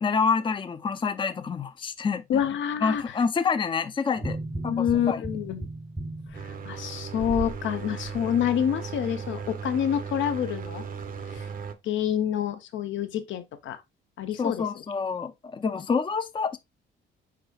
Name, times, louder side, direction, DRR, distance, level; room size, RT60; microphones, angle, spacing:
voice 1, 0.0-2.4 2.8-4.4 4.6-5.2 14.4-16.6, left 5 dB, 25° left, 0.5 m, -27 dB
voice 2, 2.3-3.0 4.7-5.7 6.3-10.8 11.3-11.4 11.8-13.8 14.2-14.6, left 9 dB, 75° left, 0.8 m, -27 dB
sound 1, 4.2-7.6 8.1-8.2, right 2 dB, 10° right, 0.7 m, -35 dB
sound 2, 6.3-11.7, right 6 dB, 45° right, 0.7 m, -37 dB
4.8 x 4.6 x 2.3 m
cardioid pair, 90°, 20 cm